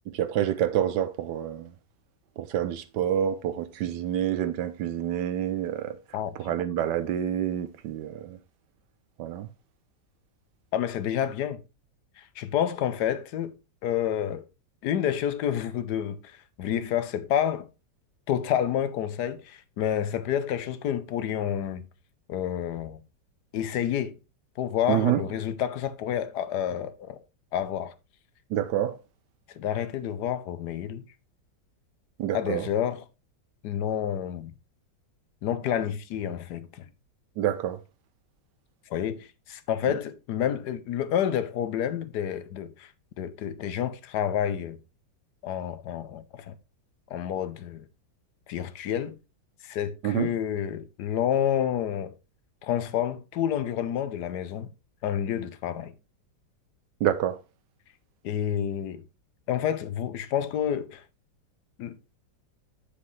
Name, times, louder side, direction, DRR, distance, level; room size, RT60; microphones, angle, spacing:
voice 1, 0.2-1.7 2.4-5.9 6.4-8.4 9.2-9.5 24.9-25.2 28.5-29.0 32.2-32.6 37.4-37.8 50.0-50.3 57.0-57.4, right 11 dB, 75° right, 1.2 m, -27 dB
voice 2, 6.1-6.6 10.7-11.6 12.2-13.6 13.8-14.5 14.8-17.7 18.3-21.8 22.3-23.0 23.5-24.2 24.6-27.2 27.5-27.9 29.5-31.0 32.3-33.1 33.6-34.5 35.4-36.9 38.9-42.9 43.2-44.8 45.4-46.5 47.1-47.9 48.5-49.2 49.6-52.1 52.6-54.7 55.0-55.9 58.2-59.0 59.5-61.0 61.8-62.0, left 9 dB, 70° left, 1.2 m, -29 dB
7.5 x 6.7 x 3.1 m
omnidirectional pair, 2.0 m